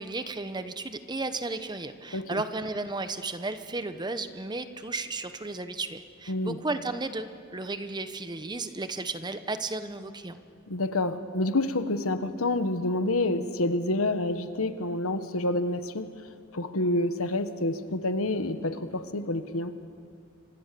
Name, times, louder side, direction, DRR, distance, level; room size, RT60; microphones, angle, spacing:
voice 1, 0.0-10.4, right 3 dB, 20° right, 10 dB, 1.0 m, -34 dB
voice 2, 10.7-16.1 16.5-19.8, left 2 dB, 80° left, 10 dB, 1.4 m, -28 dB
29.5 x 25.5 x 6.9 m, 2.4 s
head